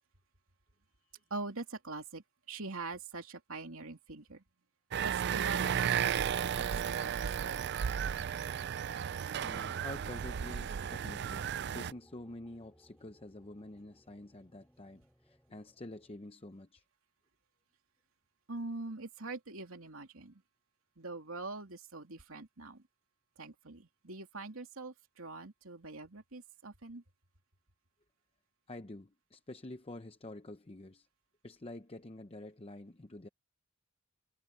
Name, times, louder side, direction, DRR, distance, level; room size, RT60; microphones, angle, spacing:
voice 1, 1.3-4.4 5.0-7.6 18.5-20.4 21.0-22.8 23.4-27.0, right 3 dB, 75° right, 3.0 m, -44 dB
sound 1, 4.9-11.9, right 8 dB, 50° right, 0.4 m, -34 dB
sound 2, 7.6-16.2, equal, 5° left, 4.2 m, -63 dB
voice 2, 9.4-16.8 28.7-31.1 31.4-33.3, left 2 dB, 25° left, 0.8 m, -48 dB
head